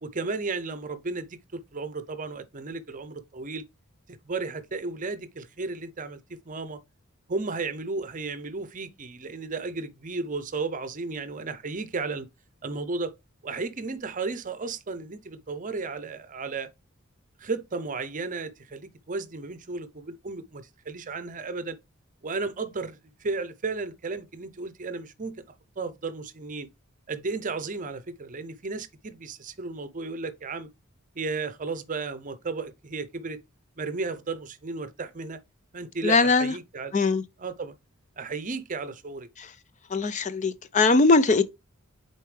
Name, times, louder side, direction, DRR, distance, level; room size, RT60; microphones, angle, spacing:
voice 1, 0.0-3.6 4.2-6.8 7.3-12.3 12.6-13.1 13.4-16.7 17.4-21.8 22.2-25.3 25.8-26.7 27.1-30.7 31.1-33.4 33.8-35.4 35.7-37.0 37.4-37.7 38.2-39.3, right 3 dB, 35° right, 0.7 m, -34 dB
voice 2, 36.0-36.5 36.9-37.2 39.4-39.5 39.9-41.4, left 3 dB, 35° left, 0.4 m, -21 dB
6.6 x 4.3 x 3.3 m
head